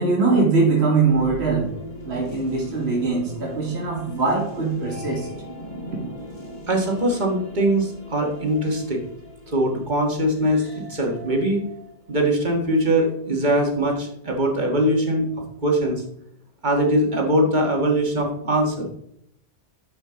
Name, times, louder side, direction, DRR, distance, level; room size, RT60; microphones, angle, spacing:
voice 1, 0.0-1.7 2.1-5.3, right 4 dB, 70° right, -2 dB, 2.1 m, -21 dB
sound 1, 1.0-12.8, equal, 40° left, 2.7 m, -40 dB
voice 2, 6.7-9.0 9.5-11.6 12.1-15.3 15.6-16.0 16.6-18.9, right 1 dB, 45° right, 1 dB, 1.7 m, -21 dB
10.5 x 5.2 x 3.7 m, 0.72 s
omnidirectional pair, 1.1 m